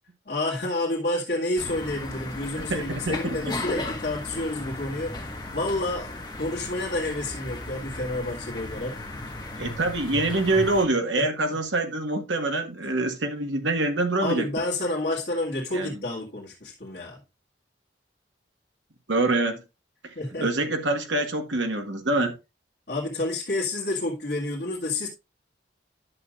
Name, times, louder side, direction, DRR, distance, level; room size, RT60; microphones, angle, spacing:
voice 1, 0.3-9.0 11.1-11.3 14.2-17.2 20.2-20.5 22.9-25.1, left 2 dB, 55° left, 2.1 m, -29 dB
sound 1, 1.6-10.8, left 2 dB, 25° left, 1.4 m, -36 dB
voice 2, 2.7-3.5 9.6-14.5 15.7-16.0 19.1-19.6 20.4-22.3, right 2 dB, 85° right, 1.6 m, -25 dB
10.5 x 7.1 x 2.5 m
head